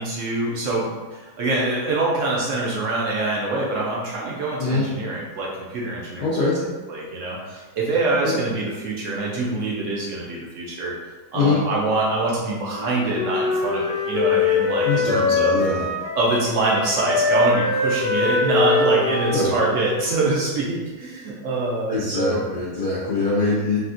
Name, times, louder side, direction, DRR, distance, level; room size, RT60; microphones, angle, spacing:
voice 1, 0.0-6.3 6.9-11.0 11.3-15.6 16.2-22.5, right 2 dB, 70° right, -3 dB, 0.8 m, -24 dB
voice 2, 6.2-6.6 8.2-8.4 11.3-11.6 14.8-15.8 19.3-19.5 21.9-23.8, left 3 dB, 90° left, -7 dB, 0.4 m, -23 dB
Wind instrument woodwind instrument, 12.7-16.3 16.6-20.5, left 3 dB, 60° left, 0.7 m, -23 dB
3.4 x 2.4 x 2.4 m, 1.2 s
omnidirectional pair, 1.7 m